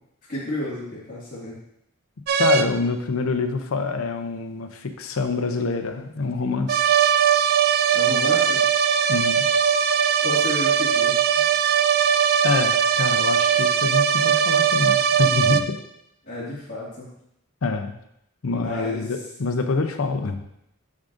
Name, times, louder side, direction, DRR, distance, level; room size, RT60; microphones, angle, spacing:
voice 1, 0.3-1.5 7.9-8.6 10.2-11.2 16.3-17.1 18.5-19.0, left 1 dB, 40° left, -11 dB, 2.1 m, -31 dB
sound 1, 2.3-2.6 6.7-15.6, right 7 dB, 45° right, 0.3 m, -20 dB
voice 2, 2.4-6.9 9.1-9.4 12.4-15.8 17.6-17.9 18.4-20.4, left 3 dB, 70° left, 7 dB, 0.6 m, -26 dB
7.2 x 6.3 x 2.6 m, 0.79 s
head